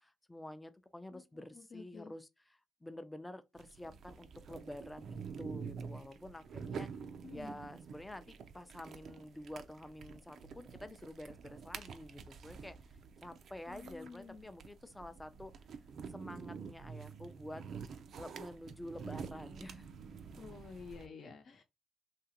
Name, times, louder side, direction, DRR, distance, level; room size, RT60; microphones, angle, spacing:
voice 1, 0.0-6.9 7.3-12.8 13.2-15.5 16.1-17.6 18.2-19.9, left 1 dB, 10° left, 0.5 m, -49 dB
voice 2, 1.5-2.1 7.2-7.5 13.7-14.5 20.4-21.6, left 4 dB, 55° left, 0.7 m, -50 dB
sound 1, 3.6-21.1, right 6 dB, 60° right, 0.4 m, -48 dB
2.9 x 2.4 x 2.8 m
cardioid pair, 90°, 0 cm